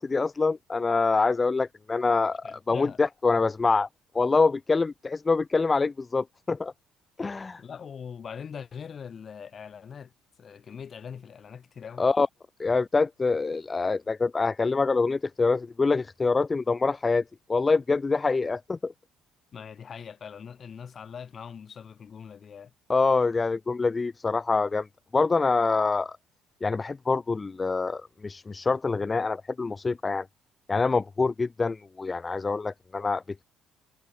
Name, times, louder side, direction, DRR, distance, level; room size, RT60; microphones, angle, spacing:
voice 1, 0.0-3.9 4.1-6.7 7.2-7.6 12.0-12.3 12.6-17.2 17.5-18.9 22.9-24.9 25.1-26.2 26.6-30.3 30.7-33.4, left 4 dB, 20° left, 0.7 m, -25 dB
voice 2, 2.4-3.0 7.6-10.1 10.4-12.1 19.5-22.7, left 7 dB, 40° left, 5.5 m, -41 dB
cardioid pair, 120°, 0 cm